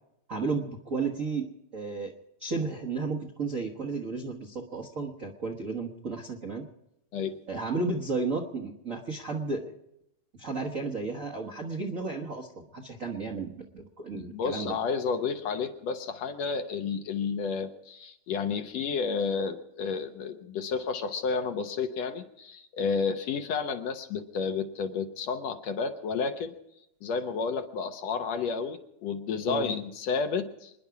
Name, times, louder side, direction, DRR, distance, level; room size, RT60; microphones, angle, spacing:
voice 1, 0.3-2.1 2.4-6.6 7.5-9.7 10.4-14.8 29.5-29.7, right 4 dB, 45° right, 1 dB, 1.0 m, -33 dB
voice 2, 14.2-26.5 27.0-30.7, left 5 dB, 65° left, 7 dB, 1.9 m, -31 dB
27.0 x 10.5 x 4.8 m, 0.84 s
omnidirectional pair, 3.6 m